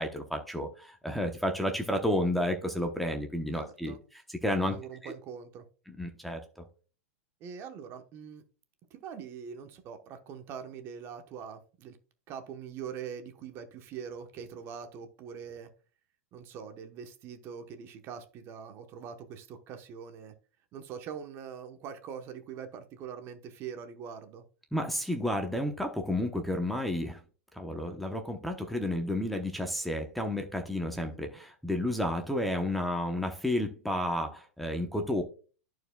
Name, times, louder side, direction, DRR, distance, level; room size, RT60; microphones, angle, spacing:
voice 1, 0.0-3.9 4.4-4.8 5.0-5.1 6.0-6.4 24.7-27.2 27.5-35.2, left 1 dB, ahead, 4 dB, 0.8 m, -31 dB
voice 2, 3.5-4.0 4.6-5.6 7.4-8.4 8.9-12.0 12.3-15.7 16.3-20.3 20.7-24.4, right 7 dB, 35° right, 7 dB, 1.0 m, -43 dB
13.5 x 4.6 x 2.2 m, 0.38 s
hypercardioid pair, 140°, 7 cm